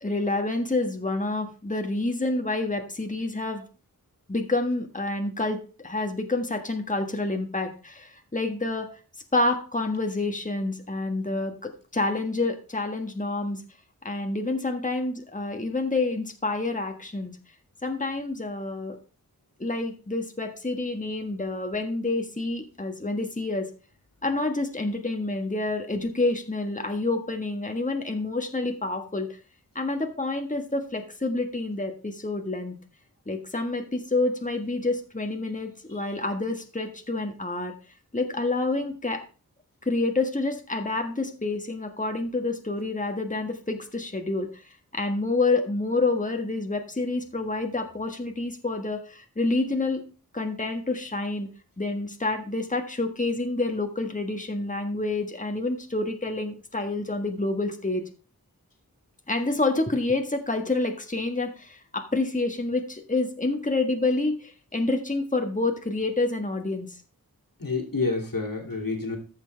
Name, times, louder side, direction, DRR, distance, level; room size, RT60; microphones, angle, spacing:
voice 1, 0.0-3.6 4.3-5.6 5.8-8.9 9.3-13.6 14.0-17.3 17.8-19.0 19.6-23.7 24.2-29.3 29.7-32.8 33.3-37.7 38.1-39.2 39.8-44.5 44.9-50.0 50.3-51.5 51.8-58.0 59.3-67.0, left 2 dB, 20° left, 4 dB, 1.6 m, -28 dB
voice 2, 67.6-69.2, left 3 dB, 65° left, 1 dB, 2.8 m, -29 dB
14.5 x 5.9 x 3.4 m, 0.36 s
wide cardioid pair, 50°, 35 cm